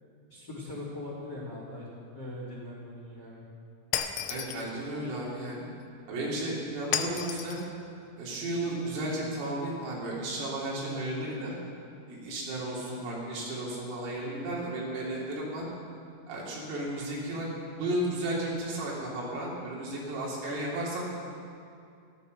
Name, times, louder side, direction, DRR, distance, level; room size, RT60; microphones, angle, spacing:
voice 1, 0.3-1.9 2.1-3.4, left 1 dB, 25° left, -4 dB, 3.7 m, -40 dB
Shatter, 3.9-4.7 6.9-7.7, left 9 dB, 85° left, 3.1 m, -32 dB
voice 2, 4.3-5.7 6.1-7.6 8.2-11.5 12.1-15.6 16.3-17.5 17.8-21.0, right 1 dB, 75° right, -5 dB, 5.8 m, -33 dB
15.0 x 13.0 x 6.6 m, 2.4 s
omnidirectional pair, 5.9 m